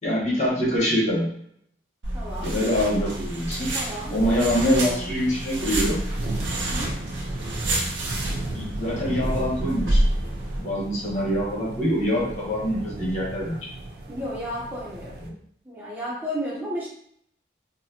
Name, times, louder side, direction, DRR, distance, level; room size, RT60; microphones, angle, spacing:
voice 1, 0.0-1.3 2.4-3.7 4.1-6.0 8.5-10.0 10.6-13.6 15.2-15.3, equal, 40° left, -5 dB, 1.0 m, -24 dB
sound 1, 2.0-10.6, right 1 dB, 90° right, 0.9 m, -28 dB
voice 2, 2.1-2.5 3.7-4.5 6.5-6.9 14.1-15.1 15.6-16.9, equal, 10° right, -7 dB, 0.6 m, -33 dB
sound 2, 2.9-15.3, right 2 dB, 60° right, 0.4 m, -36 dB
4.0 x 2.1 x 2.7 m, 0.69 s
head